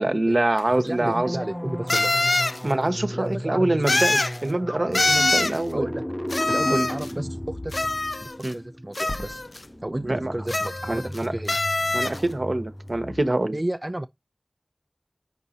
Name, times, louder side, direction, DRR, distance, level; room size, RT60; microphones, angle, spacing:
voice 1, 0.0-1.4 2.6-5.9 6.7-6.9 8.4-8.6 10.0-10.3 10.9-11.3 11.9-13.6, right 2 dB, 65° right, 1.1 m, -25 dB
sound 1, 0.6-0.7 1.9-2.6 3.9-4.4 4.9-5.6 6.3-7.1 7.7-8.5 9.0-9.6 10.5-11.2 11.5-12.2, left 2 dB, 70° left, 0.4 m, -24 dB
voice 2, 0.8-2.1 3.1-3.8 5.7-6.0 6.5-7.8 8.2-9.4 9.8-11.6 13.5-14.1, right 1 dB, 35° right, 0.6 m, -32 dB
sound 2, 1.0-13.2, equal, 10° left, 0.6 m, -34 dB
6.8 x 5.1 x 2.9 m
wide cardioid pair, 40°, 0 cm